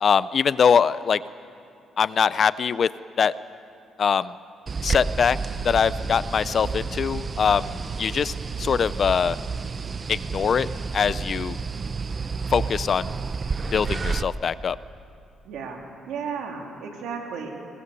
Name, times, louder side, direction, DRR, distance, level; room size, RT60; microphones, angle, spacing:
voice 1, 0.0-1.2 2.0-2.9 3.2-3.3 4.0-4.3 4.8-5.4 5.6-7.7 8.0-9.4 10.1-10.7 10.9-11.6 12.5-13.2 13.7-14.8, left 6 dB, 50° left, 17 dB, 0.5 m, -22 dB
sound 1, 4.7-14.2, right 4 dB, 35° right, 0.7 m, -30 dB
voice 2, 15.4-17.5, right 6 dB, 85° right, 1 dB, 3.3 m, -34 dB
21.5 x 21.5 x 6.9 m, 2.5 s
cardioid pair, 90°, 0 cm